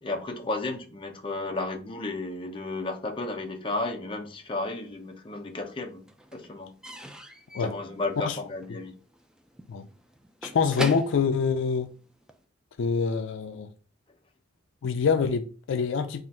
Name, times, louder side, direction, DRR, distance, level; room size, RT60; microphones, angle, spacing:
voice 1, 0.0-6.7 7.6-9.0, left 2 dB, 25° left, 0.7 m, -33 dB
Slam / Squeak / Wood, 4.6-5.4 5.7-12.4, equal, 5° right, 0.3 m, -41 dB
voice 2, 10.4-11.9 12.8-13.7 14.8-16.2, left 5 dB, 65° left, 0.4 m, -25 dB
3.9 x 2.5 x 4.1 m
head